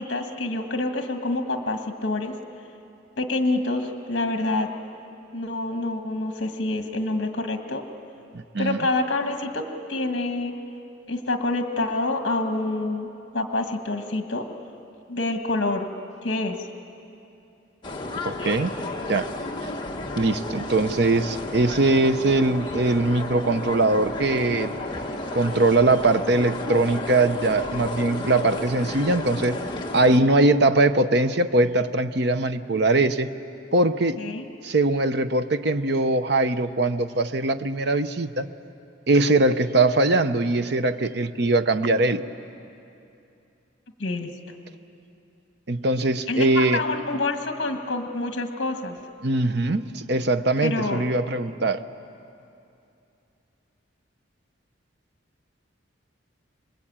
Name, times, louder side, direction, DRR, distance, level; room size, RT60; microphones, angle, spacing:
voice 1, 0.0-2.3 3.2-4.7 5.3-7.8 8.6-9.6 9.9-10.5 11.1-13.1 13.3-14.4 15.1-15.9 16.2-16.5 34.2-34.5 44.0-44.3 46.3-49.0 50.6-51.0, left 2 dB, 60° left, 5 dB, 1.7 m, -27 dB
sound 1, 17.8-30.2, left 2 dB, 25° left, 1.5 m, -32 dB
voice 2, 18.2-18.7 19.1-19.3 20.2-24.8 25.3-29.6 29.9-33.3 33.7-34.2 34.6-38.5 39.1-42.2 45.7-46.8 49.2-51.8, right 2 dB, 55° right, 10 dB, 0.8 m, -21 dB
26.5 x 21.5 x 8.8 m, 2.7 s
head